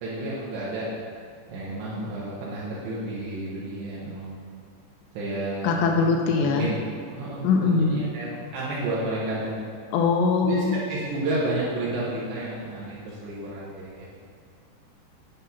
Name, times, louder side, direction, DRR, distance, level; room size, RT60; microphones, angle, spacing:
voice 1, 0.0-0.9 1.5-4.3 5.1-6.8 7.1-9.6 10.4-14.1, right 2 dB, 75° right, -8 dB, 3.2 m, -31 dB
voice 2, 5.6-6.7 7.4-8.1 9.9-10.8, left 5 dB, 85° left, 2 dB, 2.6 m, -22 dB
11.0 x 5.3 x 4.2 m, 2.2 s
omnidirectional pair, 5.2 m